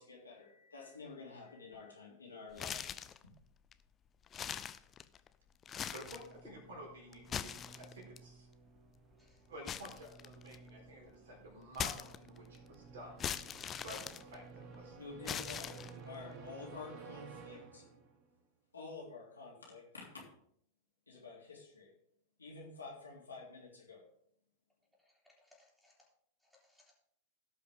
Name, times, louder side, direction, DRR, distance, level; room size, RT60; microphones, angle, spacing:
voice 1, 0.0-3.3 14.9-15.8 16.0-17.8 18.7-20.2 21.1-21.9 22.4-24.0, left 4 dB, 75° left, -3 dB, 3.1 m, -50 dB
sound 1, 2.5-3.2 3.7-3.8 4.3-5.3 5.6-6.3 7.1-8.2 9.7-10.7 11.7-12.6 13.2-14.8 15.2-16.2, left 8 dB, 25° left, 0.5 m, -41 dB
sound 2, 5.7-18.3, right 5 dB, 40° right, 1.2 m, -55 dB
voice 2, 5.9-8.5 9.5-13.2 13.8-14.9, equal, 60° right, -1 dB, 4.0 m, -51 dB
voice 3, 9.1-9.5 25.0-26.1 26.4-26.9, left 1 dB, ahead, -5 dB, 3.5 m, -68 dB
17.0 x 5.7 x 3.7 m, 0.68 s
figure-of-eight pair, 90°, 0 cm